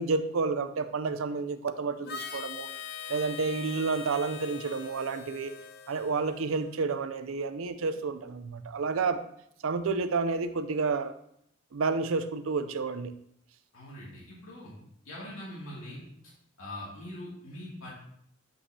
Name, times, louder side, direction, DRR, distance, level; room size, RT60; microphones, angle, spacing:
voice 1, 0.0-2.7 3.1-5.5 5.9-9.2 9.6-11.1 11.7-13.1, right 4 dB, 80° right, 10 dB, 0.5 m, -30 dB
Harmonica, 2.0-6.8, left 6 dB, 50° left, 0.5 m, -42 dB
voice 2, 13.7-14.7 15.0-16.0 16.6-17.9, left 1 dB, 85° left, -5 dB, 2.4 m, -42 dB
7.8 x 5.5 x 2.8 m, 0.70 s
head